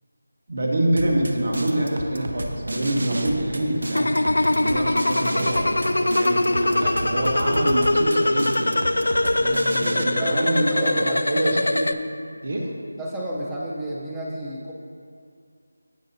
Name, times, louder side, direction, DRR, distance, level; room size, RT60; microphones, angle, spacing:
voice 1, 0.5-8.8 9.7-12.0 12.4-12.7, right 1 dB, 50° right, 0 dB, 1.6 m, -26 dB
sound 1, 1.0-10.0, right 1 dB, 70° right, 0.9 m, -33 dB
sound 2, 3.9-11.9, left 1 dB, 80° left, 0.5 m, -22 dB
voice 2, 9.2-11.6 13.0-14.7, equal, 5° right, -5 dB, 0.6 m, -31 dB
16.5 x 6.6 x 2.7 m, 2.2 s
figure-of-eight pair, 175°, 0 cm